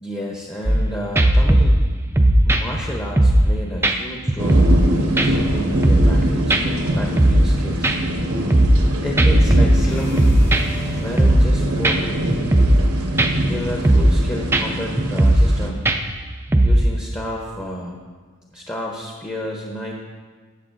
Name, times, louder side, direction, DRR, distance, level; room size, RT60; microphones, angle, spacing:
voice 1, 0.0-1.8 2.4-4.7 5.0-8.0 9.0-10.4 11.0-12.1 13.4-15.8 16.6-18.0 18.5-19.9, left 1 dB, 15° left, -1 dB, 0.7 m, -31 dB
sound 1, 0.7-0.9 1.2-3.5 3.8-4.0 4.3-4.9 5.2-6.2 6.5-6.6 7.0-7.5 7.8-8.9 9.2-10.8 11.2-11.5 11.8-12.0 12.3-12.9 13.2-13.5 13.8-14.2 14.5-14.6 15.0-15.6 15.9-16.9, right 1 dB, 10° right, 0.4 m, -16 dB
sound 2, 4.4-15.7, right 1 dB, 80° right, 1.1 m, -24 dB
sound 3, 9.8-16.0, left 1 dB, 85° left, 1.7 m, -39 dB
13.0 x 7.9 x 2.6 m, 1.5 s
head